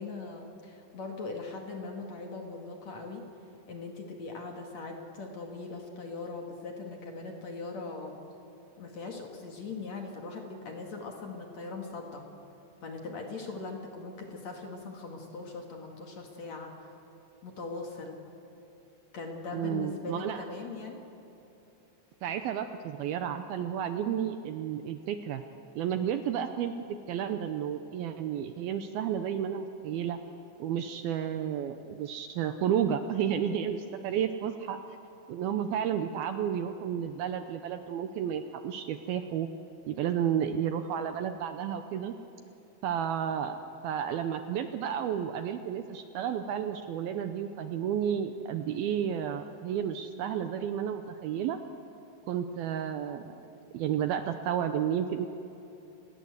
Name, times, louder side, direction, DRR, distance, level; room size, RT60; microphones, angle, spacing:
voice 1, 0.0-3.2 3.7-8.2 8.8-12.3 12.8-16.9 17.4-18.2 19.1-21.0 34.0-34.3, left 3 dB, 45° left, 2 dB, 2.7 m, -40 dB
voice 2, 19.5-20.4 22.2-25.4 25.8-26.7 27.1-30.2 30.6-34.8 35.3-39.5 39.9-42.1 42.8-51.6 52.3-53.4 53.7-55.3, right 9 dB, 85° right, 8 dB, 2.2 m, -32 dB
29.0 x 20.5 x 8.1 m, 2.9 s
omnidirectional pair, 5.3 m